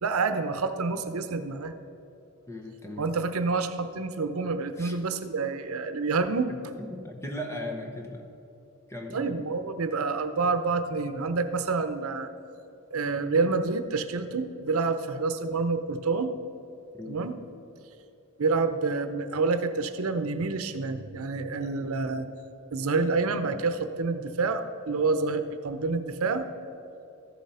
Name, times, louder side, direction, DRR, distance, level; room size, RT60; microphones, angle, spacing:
voice 1, 0.0-1.7 3.0-6.5 9.1-12.3 12.9-16.3 17.1-17.3 18.4-22.3 22.7-26.5, right 4 dB, 90° right, 10 dB, 0.7 m, -28 dB
voice 2, 2.5-3.1 4.8-5.0 6.5-8.3 8.9-9.4 16.9-17.3, left 1 dB, 15° left, 2 dB, 1.0 m, -38 dB
13.5 x 7.4 x 5.5 m, 2.8 s
head